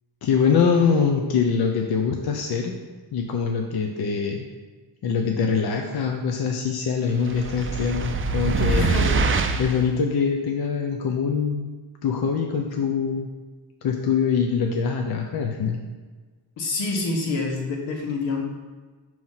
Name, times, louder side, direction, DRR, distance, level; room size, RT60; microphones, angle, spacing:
voice 1, 0.2-2.7 3.1-4.5 5.0-8.9 9.6-11.7 12.0-13.3 13.8-15.8, left 6 dB, 55° left, 2 dB, 0.7 m, -23 dB
sound 1, 7.2-9.9, right 3 dB, 30° right, 0.4 m, -24 dB
voice 2, 8.8-9.1 16.6-18.4, left 3 dB, 85° left, 0 dB, 1.4 m, -27 dB
6.2 x 3.1 x 5.6 m, 1.4 s
cardioid pair, 105°, 44 cm